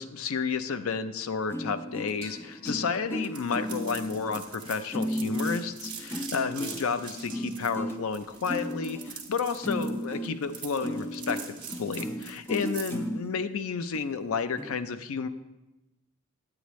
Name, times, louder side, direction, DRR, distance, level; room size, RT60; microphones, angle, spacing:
voice 1, 0.0-15.3, left 5 dB, 75° left, 11 dB, 0.5 m, -31 dB
sound 1, 1.5-13.3 13.9-14.0 14.6-14.7, equal, 10° left, 0.4 m, -34 dB
sound 2, 2.2-5.6, equal, 30° left, 2.8 m, -54 dB
sound 3, 3.3-13.1, right 7 dB, 25° right, 1.3 m, -43 dB
9.7 x 8.9 x 3.1 m, 1.0 s
head